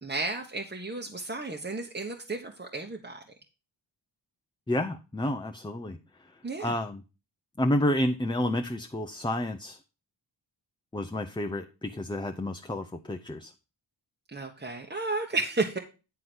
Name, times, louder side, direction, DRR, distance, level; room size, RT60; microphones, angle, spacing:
voice 1, 0.0-3.2 6.4-6.7 14.3-15.8, right 3 dB, 25° right, 1 dB, 1.1 m, -33 dB
voice 2, 4.7-6.3 6.6-7.0 7.6-9.8 10.9-13.5, left 1 dB, 10° left, 5 dB, 0.6 m, -30 dB
9.5 x 3.8 x 6.1 m, 0.31 s
cardioid pair, 60°, 45 cm